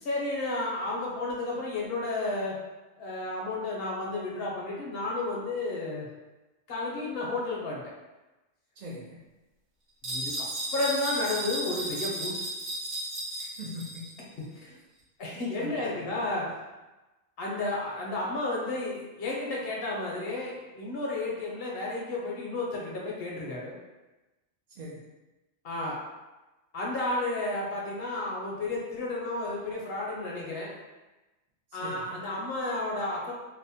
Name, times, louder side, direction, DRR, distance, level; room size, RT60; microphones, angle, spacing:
voice 1, 0.0-2.5 3.0-6.1 6.7-7.8 10.1-10.5 10.7-12.3 15.2-16.4 17.4-23.7 25.6-26.0 26.7-30.7 31.7-33.3, left 2 dB, 60° left, -3 dB, 0.8 m, -32 dB
voice 2, 8.8-9.2 13.4-14.0 14.6-14.8 15.6-15.8 16.1-16.2 24.7-25.0 31.8-32.2, equal, 70° right, -3 dB, 0.4 m, -41 dB
sound 1, 10.0-14.2, right 1 dB, 50° right, 0.8 m, -34 dB
2.7 x 2.0 x 2.7 m, 1.1 s
omnidirectional pair, 1.2 m